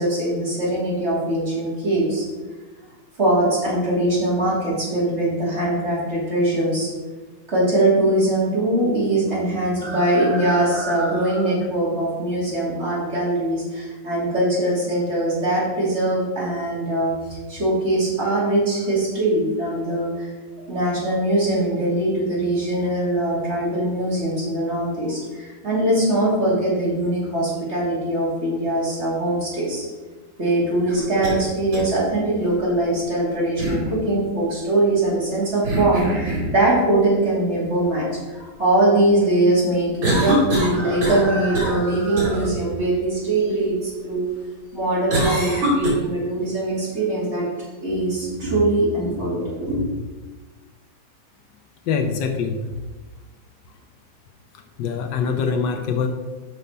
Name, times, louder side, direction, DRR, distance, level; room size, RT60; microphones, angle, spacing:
voice 1, 0.0-2.2 3.2-6.9 7.5-17.1 17.5-20.3 20.7-29.8 30.4-44.3 44.7-47.5 47.8-49.8, right 1 dB, 35° right, -6 dB, 2.9 m, -22 dB
sound 1, 30.9-31.4 31.7-31.8 33.6-33.9 35.6-36.5 40.0-41.3 41.5-41.8 42.2-42.3 45.1-45.9, right 1 dB, 80° right, 3.6 m, -22 dB
voice 2, 51.9-52.6 54.5-56.1, left 6 dB, 75° left, 6 dB, 1.2 m, -24 dB
6.3 x 5.6 x 5.4 m, 1.2 s
omnidirectional pair, 2.1 m